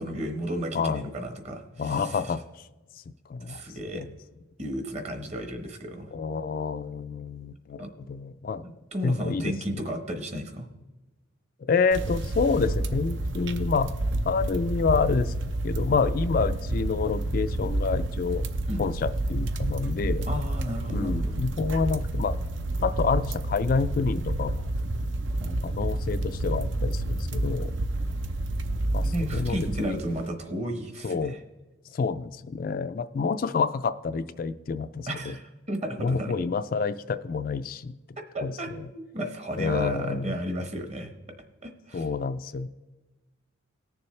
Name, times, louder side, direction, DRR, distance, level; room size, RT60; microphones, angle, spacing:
voice 1, 0.0-2.2 3.5-4.0 4.6-6.1 7.8-7.9 8.6-10.7 18.7-18.8 20.3-21.4 25.4-25.6 29.0-31.4 35.1-36.3 38.3-38.7 39.1-41.1 41.6-42.1, equal, 35° right, 6 dB, 1.1 m, -33 dB
voice 2, 1.8-2.7 3.3-3.6 3.9-4.1 6.1-8.7 9.0-9.8 11.7-13.9 14.3-15.3 15.6-18.4 18.8-20.3 20.9-22.4 22.8-24.7 25.6-27.7 28.9-30.0 31.0-31.4 31.9-35.3 36.0-37.9 38.4-38.9 39.6-40.4 41.9-42.7, left 5 dB, 45° left, 10 dB, 0.3 m, -28 dB
sound 1, 11.9-30.2, right 1 dB, 65° right, 0.6 m, -29 dB
19.0 x 6.9 x 3.2 m, 1.1 s
head